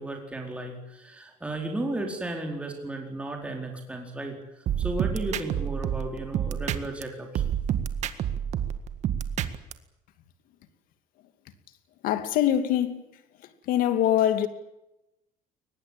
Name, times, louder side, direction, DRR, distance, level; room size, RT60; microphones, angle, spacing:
voice 1, 0.0-4.4 4.8-7.4, right 2 dB, 10° right, 4.5 m, -34 dB
sound 1, 4.7-7.0 7.3-9.7, right 9 dB, 50° right, 1.8 m, -28 dB
voice 2, 12.0-13.1 13.6-14.5, left 11 dB, 70° left, 2.6 m, -23 dB
22.5 x 20.5 x 9.0 m
cardioid pair, 150°, 15 cm